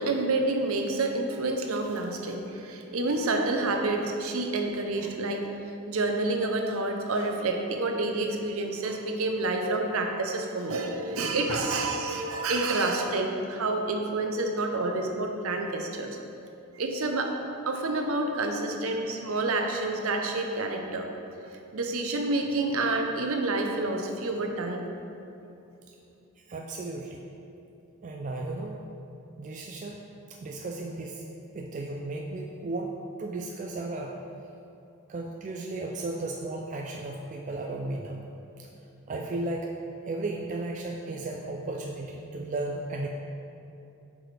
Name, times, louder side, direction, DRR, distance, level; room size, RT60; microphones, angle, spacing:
voice 1, 0.0-5.5 5.9-16.1 16.7-17.3 17.7-21.1 21.7-24.9, right 2 dB, 70° right, 3 dB, 0.6 m, -28 dB
voice 2, 26.5-27.2 28.0-28.8 29.4-30.0 30.3-31.2 31.5-32.9 33.2-34.1 35.1-38.2 38.6-38.7 39.1-39.7 40.0-43.1, right 2 dB, 35° right, 1 dB, 0.3 m, -34 dB
7.6 x 4.8 x 3.3 m, 2.7 s
head